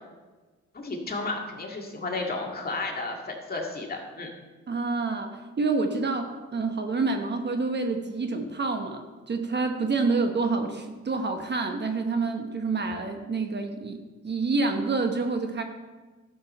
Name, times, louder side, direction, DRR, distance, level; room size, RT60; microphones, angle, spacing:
voice 1, 0.7-4.3, left 3 dB, 30° left, 0 dB, 2.1 m, -33 dB
voice 2, 4.7-15.6, right 3 dB, 35° right, 5 dB, 1.0 m, -28 dB
12.0 x 7.0 x 4.3 m, 1.3 s
cardioid pair, 90°, 30 cm